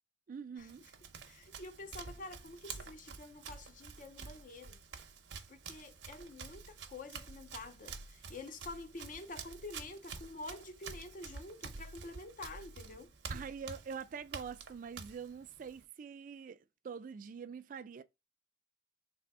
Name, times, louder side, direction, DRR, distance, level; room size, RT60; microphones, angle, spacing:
voice 1, 0.3-0.8 13.3-18.0, right 6 dB, 45° right, 0.3 m, -45 dB
Run, 0.6-15.8, right 5 dB, 75° right, 0.7 m, -49 dB
voice 2, 1.2-4.8 5.5-13.1, left 3 dB, 45° left, 0.5 m, -48 dB
3.5 x 2.7 x 4.6 m
head